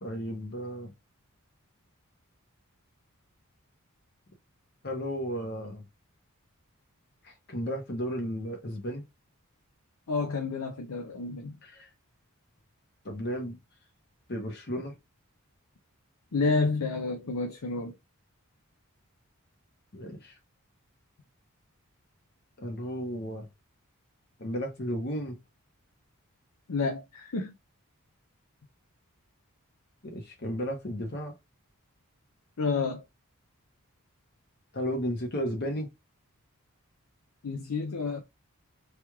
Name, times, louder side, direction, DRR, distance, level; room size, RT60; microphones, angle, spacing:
voice 1, 0.0-0.9 4.8-5.9 7.2-9.0 11.6-11.9 13.0-13.6 14.3-14.9 19.9-20.4 22.6-23.5 24.4-25.4 30.0-31.3 34.7-35.9, equal, 45° left, 1.0 m, -34 dB
voice 2, 10.1-11.6 16.3-18.0 26.7-27.5 32.6-33.0 37.4-38.2, left 4 dB, 80° left, 0.6 m, -30 dB
3.2 x 3.0 x 2.2 m
head